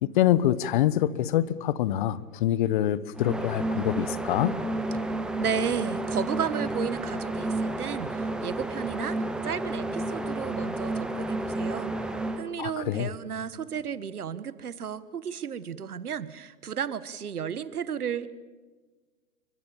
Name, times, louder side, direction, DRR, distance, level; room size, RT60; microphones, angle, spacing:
voice 1, 0.0-4.5 12.6-13.1, left 12 dB, 30° left, 1.0 m, -25 dB
sound 1, 3.1-12.4, right 2 dB, ahead, 0.8 m, -31 dB
voice 2, 5.4-9.2 9.4-18.3, right 8 dB, 65° right, 1.8 m, -33 dB
29.0 x 24.0 x 7.3 m
figure-of-eight pair, 130°, 48 cm